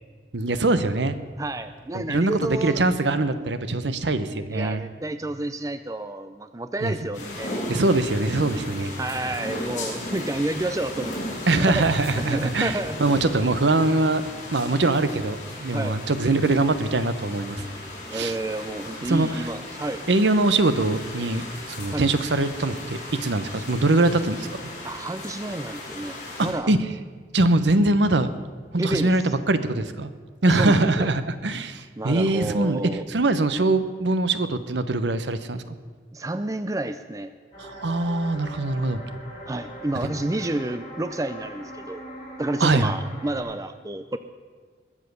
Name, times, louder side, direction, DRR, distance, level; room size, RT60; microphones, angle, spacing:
voice 1, 0.3-1.1 1.9-4.8 6.8-6.9 7.7-8.9 11.5-14.2 14.5-17.6 18.1-18.4 19.1-19.5 20.1-24.7 26.4-26.8 27.3-28.3 28.7-30.1 30.4-32.8 33.1-35.6 37.6-39.0 42.6-42.9, right 2 dB, 75° right, 11 dB, 0.9 m, -22 dB
voice 2, 1.4-2.8 4.5-7.6 9.0-11.1 11.6-11.9 12.2-13.0 15.7-16.0 18.1-20.0 21.9-22.0 24.8-26.7 28.8-29.1 30.5-31.1 32.0-33.1 36.1-37.3 39.5-42.0 42.4-44.2, right 2 dB, 20° right, 11 dB, 0.4 m, -30 dB
sound 1, 7.1-26.5, left 1 dB, 40° left, 4.7 m, -36 dB
sound 2, 37.5-43.4, equal, 25° left, 5.6 m, -41 dB
21.0 x 7.5 x 6.8 m, 1.5 s
head